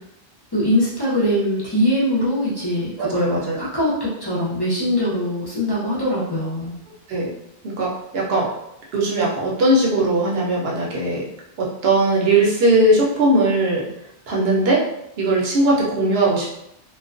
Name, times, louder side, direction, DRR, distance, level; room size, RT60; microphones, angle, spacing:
voice 1, 0.5-6.7, equal, 30° left, -9 dB, 0.6 m, -22 dB
voice 2, 3.0-3.6 7.1-7.3 7.8-8.5 8.9-11.2 11.6-13.9 14.3-14.8 15.2-16.6, right 2 dB, 70° right, -3 dB, 0.8 m, -19 dB
2.3 x 2.2 x 2.4 m, 0.80 s
omnidirectional pair, 1.1 m